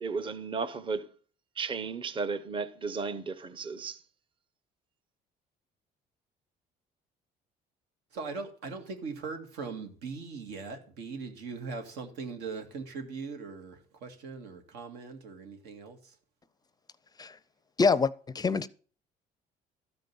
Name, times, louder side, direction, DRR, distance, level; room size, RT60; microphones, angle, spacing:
voice 1, 0.0-1.1 1.6-4.0, right 4 dB, 30° right, 0.7 m, -34 dB
voice 2, 8.1-16.2, right 4 dB, 90° right, 2.0 m, -40 dB
voice 3, 17.8-18.7, left 4 dB, 25° left, 0.5 m, -25 dB
13.0 x 5.3 x 6.8 m
cardioid pair, 110°, 17 cm